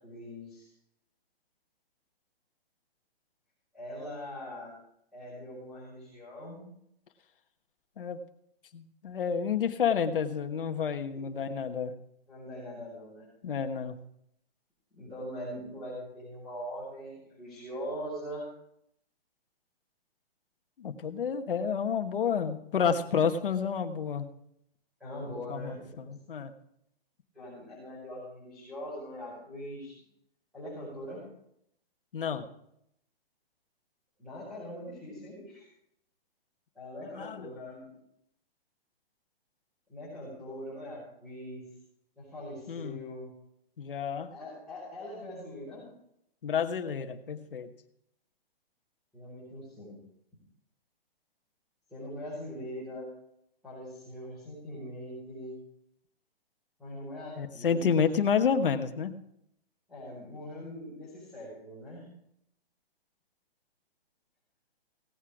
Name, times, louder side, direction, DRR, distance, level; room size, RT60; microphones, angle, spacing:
voice 1, 0.0-0.7 3.7-4.7 5.1-6.7 11.0-11.2 12.3-13.2 14.9-18.5 25.0-26.1 27.3-29.9 30.5-31.2 34.2-35.7 36.7-37.9 39.9-41.6 42.2-43.3 44.3-45.8 49.1-50.0 51.9-53.1 53.6-55.6 56.8-58.0 59.9-62.1, equal, ahead, -11 dB, 5.0 m, -42 dB
voice 2, 8.7-11.9 13.4-14.0 20.8-24.3 25.5-26.5 32.1-32.5 37.1-37.5 42.7-43.0 43.8-44.3 46.4-47.7 57.4-59.1, left 7 dB, 60° left, 8 dB, 1.3 m, -30 dB
17.0 x 8.2 x 4.9 m, 0.76 s
hypercardioid pair, 175°, 31 cm